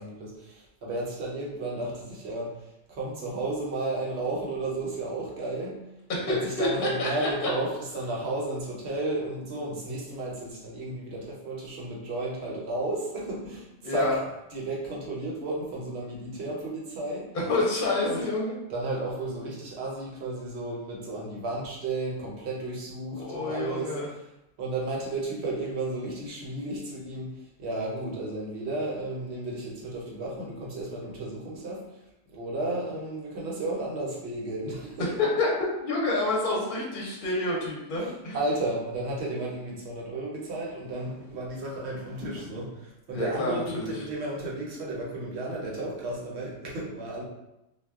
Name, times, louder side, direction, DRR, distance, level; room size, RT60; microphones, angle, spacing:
voice 1, 0.0-2.6 2.9-5.8 6.3-14.2 14.5-17.3 18.0-18.2 18.7-24.2 24.6-27.3 27.6-31.9 32.3-35.1 37.9-47.2, right 2 dB, 65° right, -3 dB, 1.0 m, -33 dB
voice 2, 6.1-6.7 7.0-7.3 13.8-14.2 17.3-18.5 23.2-24.1 35.0-35.5 35.8-38.4 43.1-43.9, left 2 dB, 50° left, -3 dB, 0.7 m, -28 dB
2.2 x 2.2 x 3.5 m, 0.89 s
omnidirectional pair, 1.2 m